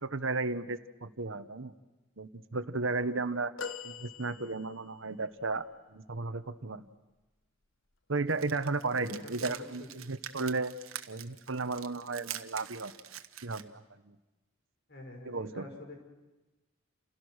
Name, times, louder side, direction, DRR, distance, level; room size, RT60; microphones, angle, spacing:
voice 1, 0.0-1.7 2.2-3.5 3.8-6.9 8.1-10.7 11.1-12.9 13.4-13.7 14.0-14.1 15.2-15.6, right 3 dB, 70° right, 11 dB, 1.2 m, -34 dB
sound 1, 3.6-5.0 5.7-5.8, left 6 dB, 70° left, 1.3 m, -42 dB
sound 2, 8.3-13.6, right 11 dB, 90° right, 1.4 m, -45 dB
voice 2, 8.9-10.1 14.9-16.0, left 1 dB, 55° left, 2 dB, 6.3 m, -47 dB
29.5 x 29.5 x 6.5 m, 1.1 s
head